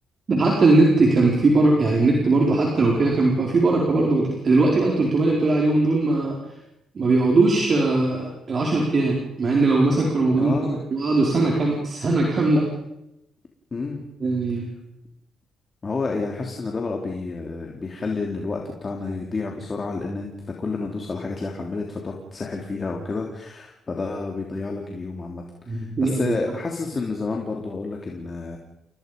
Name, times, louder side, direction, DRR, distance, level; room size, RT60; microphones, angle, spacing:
voice 1, 0.3-6.3 6.9-12.6 14.2-14.7 25.7-26.3, right 2 dB, 45° right, -2 dB, 5.0 m, -20 dB
voice 2, 10.4-10.8 13.7-14.0 15.8-20.3 20.6-28.6, left 3 dB, 35° left, 1 dB, 3.2 m, -30 dB
30.0 x 19.0 x 5.4 m, 0.85 s
cardioid pair, 90°, 0 cm